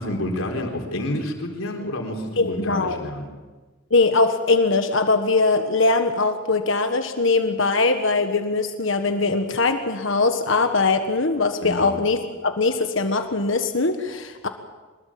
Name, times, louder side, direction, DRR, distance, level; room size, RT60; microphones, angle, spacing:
voice 1, 0.0-3.3 11.6-11.9, left 1 dB, 85° left, 2 dB, 3.9 m, -29 dB
voice 2, 2.4-3.0 3.9-14.5, left 3 dB, 65° left, 7 dB, 1.5 m, -21 dB
24.0 x 22.0 x 7.5 m, 1.3 s
head